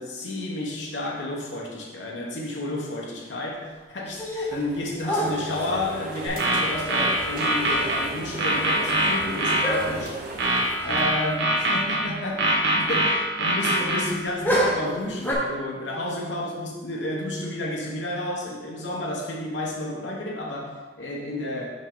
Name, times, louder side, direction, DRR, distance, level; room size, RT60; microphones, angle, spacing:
voice 1, 0.0-10.1 10.8-21.7, left 1 dB, 75° left, -3 dB, 1.0 m, -31 dB
sound 1, 4.1-4.7 5.0-5.8 7.3-7.4 7.6-8.1 8.4-8.5 9.6-10.2 10.8-11.0 11.3-11.4 14.4-15.3, equal, 10° left, 1.0 m, -27 dB
sound 2, 4.4-11.7, right 2 dB, 50° right, 1.0 m, -38 dB
sound 3, 6.3-8.0 8.4-9.7 10.4-12.0 12.4-14.0, right 1 dB, 80° right, 1.4 m, -23 dB
5.9 x 5.3 x 3.8 m, 1.3 s
head